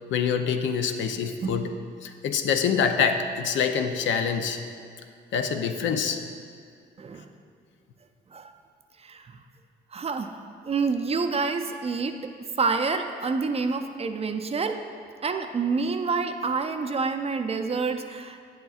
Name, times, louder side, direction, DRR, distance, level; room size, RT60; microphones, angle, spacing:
voice 1, 0.1-1.7 2.0-4.6 5.3-6.2, left 6 dB, 70° left, 6 dB, 0.6 m, -25 dB
voice 2, 9.0-9.4 9.9-10.3 10.7-12.2 12.6-14.8 15.2-18.4, right 4 dB, 30° right, 6 dB, 0.4 m, -27 dB
9.0 x 7.8 x 2.4 m, 2.3 s
cardioid pair, 90°, 20 cm